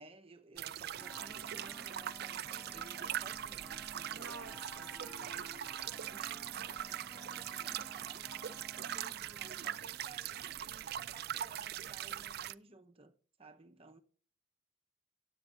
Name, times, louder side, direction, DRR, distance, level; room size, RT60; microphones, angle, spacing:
voice 1, 0.0-8.6 8.9-13.1 13.4-14.0, right 3 dB, 30° right, 0.9 m, -57 dB
sound 1, 0.6-12.5, right 11 dB, 55° right, 0.4 m, -41 dB
sound 2, 1.0-9.8, equal, ahead, 0.7 m, -54 dB
voice 2, 4.1-5.5, right 4 dB, 70° right, 0.8 m, -51 dB
18.5 x 8.2 x 2.6 m
head